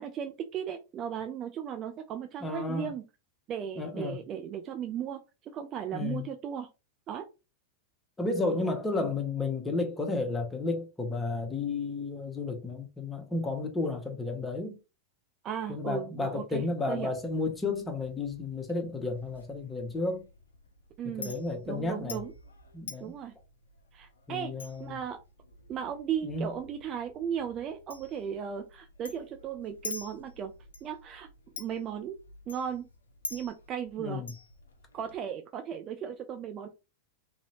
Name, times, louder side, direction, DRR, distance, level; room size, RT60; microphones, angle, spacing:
voice 1, 0.0-3.0 3.5-5.2 5.5-6.7 7.1-7.2 15.4-17.1 21.0-21.3 21.7-22.3 23.0-23.3 23.9-24.5 24.8-25.2 25.7-30.5 30.8-31.3 31.6-32.2 32.5-32.9 33.3-34.2 34.9-36.7, right 8 dB, 30° right, 0.4 m, -36 dB
voice 2, 2.4-2.9 3.8-4.2 5.9-6.3 8.2-14.8 15.7-20.3 21.2-22.2 22.7-23.2 24.3-25.0 26.2-26.5 34.0-34.3, left 3 dB, 10° left, 0.9 m, -32 dB
Chink clink, 17.0-35.2, left 3 dB, 75° left, 0.5 m, -48 dB
2.8 x 2.7 x 2.9 m
figure-of-eight pair, 90°, 0 cm